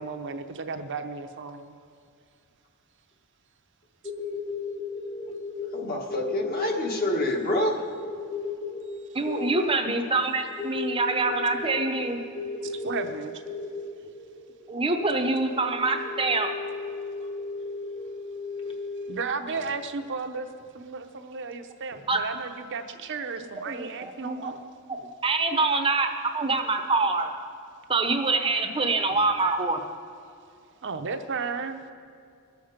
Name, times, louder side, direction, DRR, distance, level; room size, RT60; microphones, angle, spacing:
voice 1, 0.0-1.7 12.6-13.4 19.1-20.5 20.7-24.6 30.8-31.8, right 4 dB, 55° right, 7 dB, 0.7 m, -34 dB
sound 1, 4.0-19.7, left 4 dB, 25° left, 1.1 m, -36 dB
voice 2, 5.7-7.8, left 1 dB, 45° left, 1 dB, 1.7 m, -27 dB
voice 3, 9.1-12.2 14.7-16.5 22.1-22.2 23.6-24.5 24.9-25.0 25.2-26.1 26.3-27.3 27.9-29.9, right 3 dB, 25° right, 6 dB, 0.8 m, -25 dB
21.0 x 7.2 x 5.1 m, 2.4 s
head